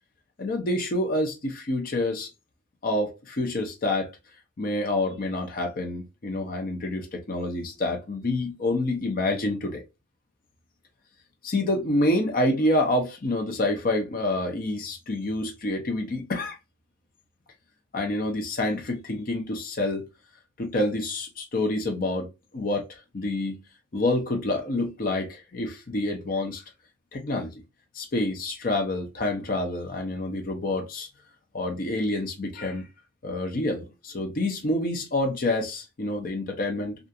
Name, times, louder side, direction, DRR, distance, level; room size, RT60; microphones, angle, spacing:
voice 1, 0.4-2.3 2.8-4.1 4.6-9.8 11.4-16.6 17.9-20.1 20.6-22.3 22.5-22.9 23.1-23.6 23.9-26.6 27.1-27.5 27.9-31.1 31.5-32.9 33.2-37.0, left 1 dB, 50° left, 0.6 m, -27 dB
2.4 x 2.3 x 2.6 m
head